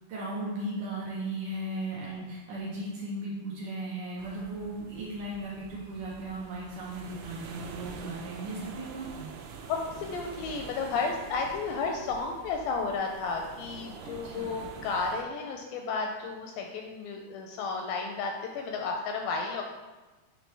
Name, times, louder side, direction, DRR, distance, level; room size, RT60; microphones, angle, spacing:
voice 1, 0.1-9.3 14.0-14.5, right 1 dB, 70° right, -6 dB, 2.0 m, -36 dB
sound 1, 4.2-15.2, right 5 dB, 85° right, 2.6 m, -46 dB
voice 2, 9.7-19.6, left 4 dB, 85° left, 2 dB, 2.1 m, -32 dB
9.3 x 3.1 x 3.3 m, 1.2 s
omnidirectional pair, 4.4 m